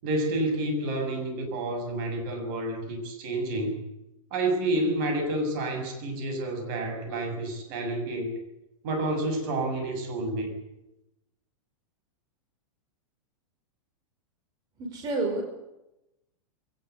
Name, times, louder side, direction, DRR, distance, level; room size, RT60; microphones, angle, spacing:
voice 1, 0.0-3.8 4.3-8.4 8.8-10.5, right 1 dB, 40° right, 6 dB, 6.9 m, -29 dB
voice 2, 14.8-15.4, right 2 dB, 20° right, 2 dB, 5.2 m, -29 dB
22.0 x 19.0 x 8.3 m, 0.90 s
supercardioid pair, 170°, 17 cm